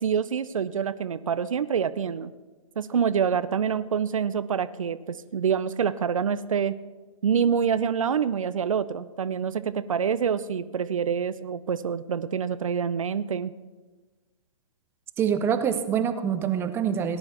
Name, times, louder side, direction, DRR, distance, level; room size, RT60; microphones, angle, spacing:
voice 1, 0.0-2.3 2.8-6.7 7.2-13.5, right 7 dB, 75° right, 14 dB, 0.5 m, -26 dB
voice 2, 15.2-17.2, right 8 dB, 15° right, 10 dB, 0.5 m, -25 dB
18.5 x 10.5 x 3.0 m, 1.3 s
hypercardioid pair, 130°, 17 cm